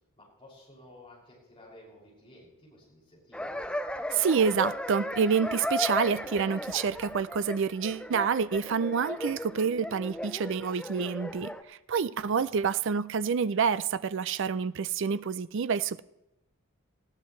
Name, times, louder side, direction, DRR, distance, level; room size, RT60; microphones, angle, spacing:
voice 1, 0.2-3.5 12.3-12.7, left 1 dB, 25° left, 6.5 m, -54 dB
sound 1, 3.3-11.6, left 1 dB, 5° left, 0.5 m, -36 dB
voice 2, 4.1-16.0, right 6 dB, 55° right, 0.4 m, -28 dB
20.0 x 15.0 x 3.2 m
head